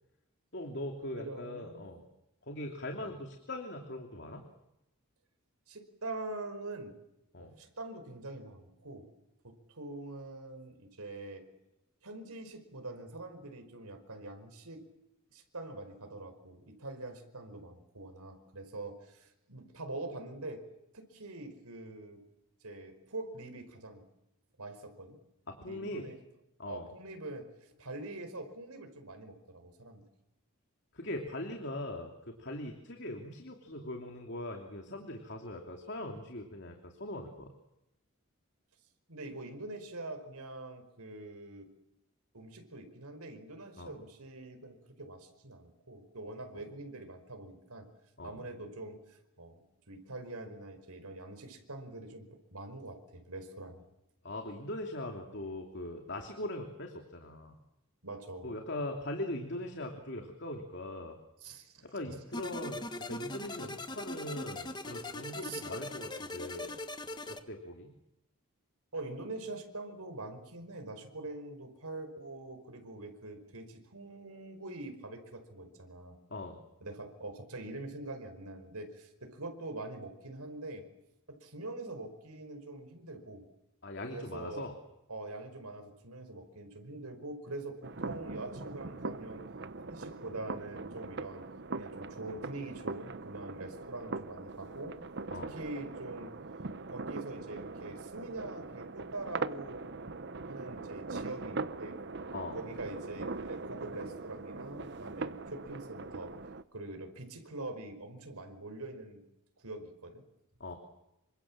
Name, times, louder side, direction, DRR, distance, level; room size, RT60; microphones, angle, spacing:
voice 1, 0.5-2.0 2.4-4.4 7.3-7.5 25.5-26.1 26.6-26.9 30.9-37.5 43.8-43.9 48.2-48.4 54.2-57.6 58.4-61.2 61.8-66.8 67.3-67.9 76.3-76.6 83.8-84.8 95.3-95.5 102.3-102.6 110.6-110.8, left 1 dB, 50° left, 3 dB, 2.9 m, -41 dB
voice 2, 1.2-2.0 3.0-3.1 5.7-7.0 7.4-9.1 9.4-11.5 12.0-14.9 15.3-20.7 20.9-22.2 22.6-24.1 24.6-25.2 25.6-26.2 26.7-30.0 39.1-41.7 42.3-47.9 48.2-53.8 58.0-58.5 61.4-62.2 65.4-65.6 68.9-76.2 76.8-80.9 81.3-83.5 84.1-84.7 85.1-89.4 89.8-91.5 91.8-95.0 95.5-96.3 96.9-99.9 100.5-102.0 102.5-106.3 106.7-109.2 109.6-110.2, right 2 dB, 90° right, 7 dB, 5.2 m, -44 dB
sound 1, 62.3-67.4, left 1 dB, 20° left, 1.5 m, -41 dB
sound 2, 87.8-106.6, right 3 dB, 50° right, 0.9 m, -41 dB
28.0 x 25.0 x 7.5 m, 0.90 s
head